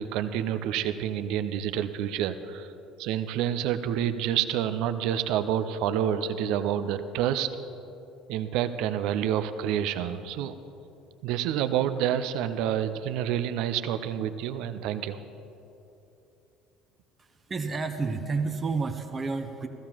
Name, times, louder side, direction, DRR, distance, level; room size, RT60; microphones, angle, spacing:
voice 1, 0.0-2.7 3.0-7.5 8.3-10.5 11.2-15.2, right 10 dB, 60° right, 11 dB, 0.5 m, -28 dB
voice 2, 17.2-19.7, right 4 dB, 25° right, 6 dB, 0.8 m, -30 dB
17.0 x 15.0 x 2.9 m, 2.9 s
figure-of-eight pair, 60°, 0 cm